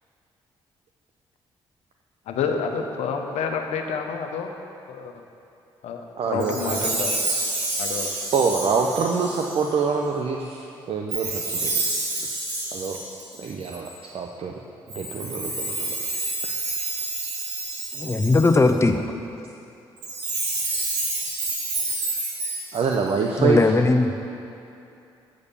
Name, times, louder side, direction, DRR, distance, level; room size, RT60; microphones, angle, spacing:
voice 1, 2.3-4.5 4.9-5.1 5.8-7.1 7.8-8.1, left 6 dB, 75° left, 3 dB, 0.8 m, -28 dB
voice 2, 6.2-6.8 8.3-11.7 12.2-12.3 12.7-13.0 13.4-14.5 14.9-15.9 17.2-17.3 22.7-23.6, right 5 dB, 55° right, 0 dB, 0.7 m, -25 dB
Chime, 6.4-9.7 11.1-13.9 14.9-18.7 20.0-23.1, right 2 dB, 85° right, 1.7 m, -29 dB
voice 3, 17.9-19.0 23.4-24.1, left 3 dB, 25° left, 6 dB, 0.7 m, -19 dB
8.3 x 5.1 x 6.9 m, 2.7 s
hypercardioid pair, 50°, 11 cm